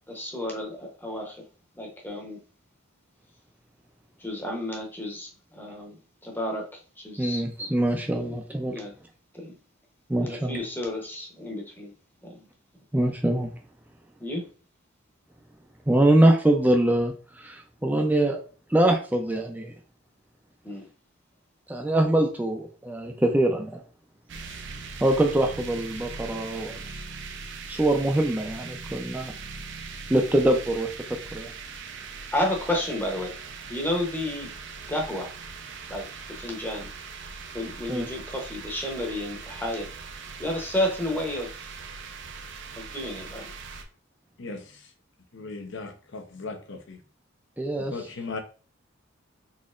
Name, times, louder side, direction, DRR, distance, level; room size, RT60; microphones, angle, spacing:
voice 1, 0.1-1.4 1.8-2.4 4.2-7.4 7.9-8.0 8.7-8.9 9.3-9.6 10.2-11.9 12.2-12.5 14.2-14.4 20.6-20.9 23.1-23.2 24.4-24.6 32.3-33.3 33.7-34.5 34.9-35.3 35.9-36.9 37.5-39.9 40.4-41.7 42.7-43.5, left 1 dB, 10° left, 0.8 m, -31 dB
voice 2, 7.2-8.7 10.1-10.6 12.9-13.5 15.9-18.4 18.7-19.7 21.7-23.8 25.0-26.8 27.7-29.3 30.1-30.9 31.3-31.5 37.9-38.1 47.6-47.9, right 1 dB, 10° right, 0.5 m, -23 dB
sound 1, 24.3-43.8, right 5 dB, 65° right, 0.6 m, -40 dB
voice 3, 44.4-44.9 45.3-47.0 47.9-48.4, left 3 dB, 65° left, 0.7 m, -37 dB
4.1 x 2.9 x 2.5 m
head